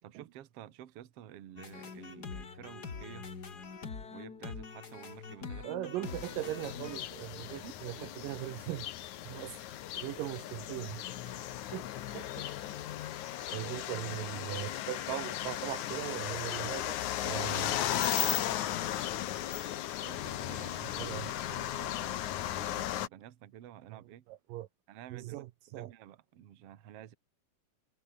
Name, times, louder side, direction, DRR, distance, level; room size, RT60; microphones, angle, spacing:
voice 1, 0.0-3.3 4.1-5.7 7.5-7.8 13.4-13.7 20.0-24.3 24.9-25.4 25.7-27.1, right 11 dB, 55° right, 2.0 m, -51 dB
sound 1, 1.6-7.0, left 5 dB, 30° left, 2.4 m, -44 dB
voice 2, 5.6-8.9 9.2-9.6 10.0-12.5 13.5-17.0 17.2-17.8 21.0-21.3 23.9-24.0 24.3-24.7 25.1-25.9, right 15 dB, 75° right, 2.4 m, -40 dB
sound 2, 6.0-23.1, left 12 dB, 65° left, 2.4 m, -36 dB
omnidirectional pair, 4.1 m